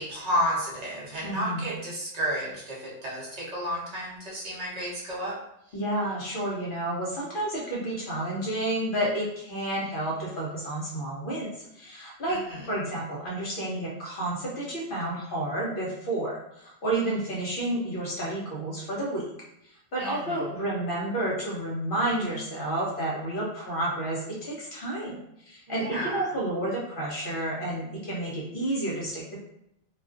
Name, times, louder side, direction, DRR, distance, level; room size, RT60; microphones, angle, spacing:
voice 1, 0.0-5.3 5.7-5.8 12.3-12.6 20.0-20.7 25.7-26.3, equal, 40° right, -6 dB, 0.7 m, -32 dB
voice 2, 1.2-1.7 5.7-11.5 11.7-12.4 12.7-19.3 19.9-29.4, right 1 dB, 55° left, -4 dB, 0.7 m, -30 dB
2.4 x 2.3 x 2.3 m, 0.80 s
omnidirectional pair, 1.2 m